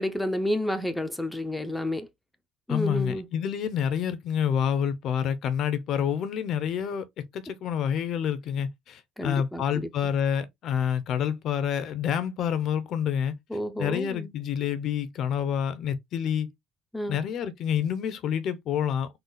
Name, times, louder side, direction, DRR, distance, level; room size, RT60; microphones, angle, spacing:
voice 1, 0.0-2.1 2.7-3.3 9.2-9.9 13.5-14.3 16.9-17.2, left 1 dB, 5° left, 0.6 m, -30 dB
voice 2, 2.7-13.3 13.8-16.5 17.1-19.1, left 8 dB, 55° left, 0.7 m, -28 dB
3.9 x 2.4 x 3.9 m
cardioid pair, 125°, 0 cm